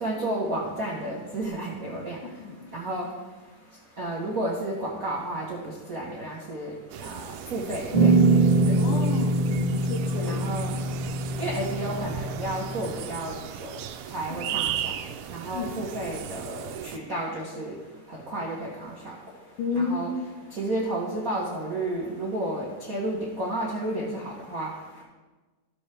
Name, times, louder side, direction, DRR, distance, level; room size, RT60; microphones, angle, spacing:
voice 1, 0.0-2.2 2.7-3.1 4.0-5.6 5.9-6.7 7.0-7.2 7.5-8.1 10.2-10.8 11.4-13.3 14.1-14.9 15.3-16.6 16.9-17.7 18.1-19.1 19.7-20.1 20.6-24.7, right 1 dB, 65° right, -4 dB, 0.8 m, -31 dB
voice 2, 2.4-2.7 8.5-10.4 15.5-15.7 19.6-20.1, left 4 dB, 90° left, 5 dB, 2.4 m, -31 dB
sound 1, 6.9-17.0, right 10 dB, 85° right, 2.0 m, -36 dB
sound 2, 7.9-12.9, right 2 dB, 15° right, 1.3 m, -23 dB
13.5 x 6.9 x 3.3 m, 1.3 s
omnidirectional pair, 3.5 m